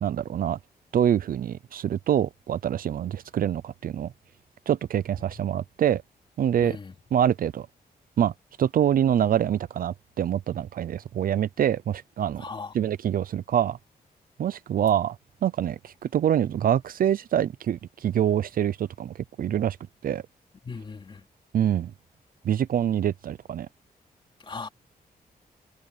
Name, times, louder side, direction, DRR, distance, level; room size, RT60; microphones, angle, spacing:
voice 1, 0.0-0.6 0.9-4.1 4.7-6.0 6.4-6.8 7.1-7.7 8.2-8.3 8.6-12.5 12.7-13.8 14.4-15.2 15.4-19.8 20.0-20.2 21.5-21.9 22.4-23.7, right 10 dB, 65° right, 0.5 m, -25 dB
voice 2, 6.6-7.0 12.4-12.7 20.6-21.2 24.4-24.7, left 4 dB, 30° left, 3.6 m, -37 dB
wide cardioid pair, 180°, 16 cm